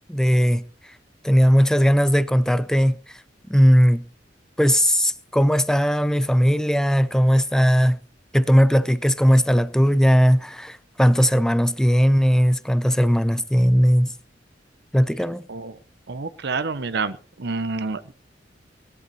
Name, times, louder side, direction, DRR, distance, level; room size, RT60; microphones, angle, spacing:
voice 1, 0.1-0.6 1.2-3.0 3.5-4.0 4.6-8.0 8.3-14.1 14.9-15.5, equal, 5° left, 0.6 m, -18 dB
voice 2, 15.5-15.8 16.1-18.1, right 4 dB, 65° right, 0.8 m, -28 dB
18.0 x 11.0 x 4.2 m
head